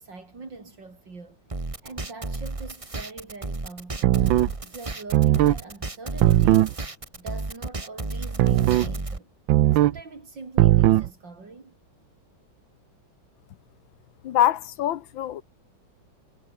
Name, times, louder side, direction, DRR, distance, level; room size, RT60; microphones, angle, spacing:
voice 1, 0.0-1.4 1.8-4.1 4.6-6.8 7.2-9.3 9.7-11.8, right 3 dB, 70° right, 4.7 m, -42 dB
sound 1, 1.5-9.2, right 3 dB, 20° right, 1.5 m, -33 dB
sound 2, 4.0-4.5 5.1-5.6 6.2-6.7 8.4-8.9 9.5-10.0 10.6-11.1, right 14 dB, 85° right, 1.5 m, -18 dB
voice 2, 14.2-15.4, left 11 dB, 85° left, 1.7 m, -24 dB
omnidirectional pair, 2.1 m